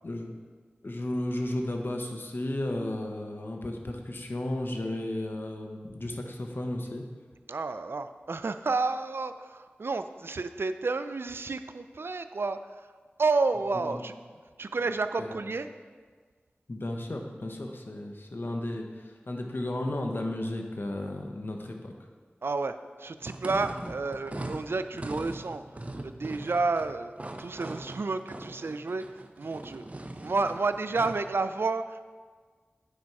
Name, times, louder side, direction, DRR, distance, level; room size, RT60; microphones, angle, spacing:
voice 1, 0.8-7.0 13.8-13.9 15.2-15.4 16.7-21.9, left 1 dB, 65° left, 3 dB, 1.0 m, -34 dB
voice 2, 7.5-12.9 13.2-14.1 14.6-15.7 22.4-25.6 26.0-27.1 27.4-32.0, right 3 dB, 75° right, 10 dB, 0.4 m, -30 dB
sound 1, 23.2-31.3, right 1 dB, 35° right, 0.6 m, -40 dB
8.6 x 5.3 x 4.7 m, 1.6 s
wide cardioid pair, 40°, 4 cm